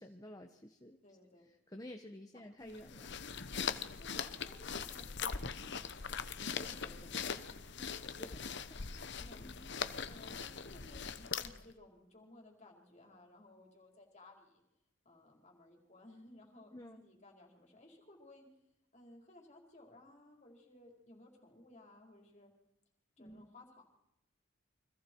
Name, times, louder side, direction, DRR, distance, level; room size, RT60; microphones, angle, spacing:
voice 1, 0.0-1.0 1.5-3.1 7.7-7.8 8.0-8.4 8.7-9.7 16.7-17.0 23.2-23.5, left 1 dB, 20° left, 5 dB, 1.3 m, -52 dB
voice 2, 1.0-1.5 2.6-2.8 4.0-7.5 9.2-9.5 10.0-14.6 15.0-18.5 18.9-22.5 23.2-23.9, left 1 dB, 35° left, 1 dB, 4.6 m, -58 dB
sound 1, 2.7-11.7, left 6 dB, 60° left, 1.1 m, -41 dB
30.0 x 25.0 x 4.7 m, 0.90 s
head